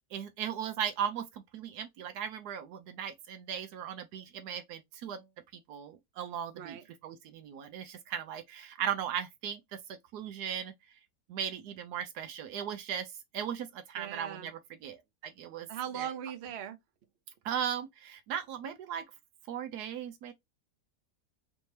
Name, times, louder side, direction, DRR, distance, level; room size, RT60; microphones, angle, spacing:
voice 1, 0.1-5.3 5.7-10.7 11.3-13.1 13.3-15.7 15.9-16.1 17.4-19.0 19.5-20.3, right 9 dB, 75° right, 1.2 m, -37 dB
voice 2, 14.0-14.5 15.7-16.8, right 9 dB, 55° right, 0.7 m, -39 dB
3.4 x 2.7 x 3.1 m
omnidirectional pair, 1.8 m